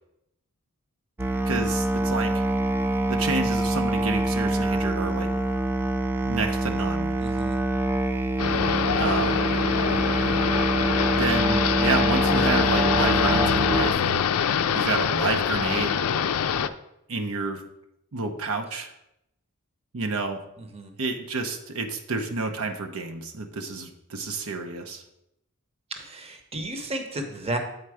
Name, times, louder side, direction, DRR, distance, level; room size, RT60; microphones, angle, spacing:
Musical instrument, 1.2-13.9, right 1 dB, 10° right, 0.3 m, -25 dB
voice 1, 1.5-2.3 3.1-5.3 6.2-7.1 9.0-9.5 11.1-16.0 17.1-17.6 18.1-18.9 19.9-20.4 21.0-25.0, right 3 dB, 80° right, 4 dB, 0.8 m, -29 dB
voice 2, 7.2-7.6 20.6-20.9 26.0-27.6, right 1 dB, 30° right, 5 dB, 0.8 m, -33 dB
sound 1, 8.4-16.7, left 7 dB, 80° left, 0.4 m, -24 dB
8.1 x 4.4 x 4.8 m, 0.83 s
head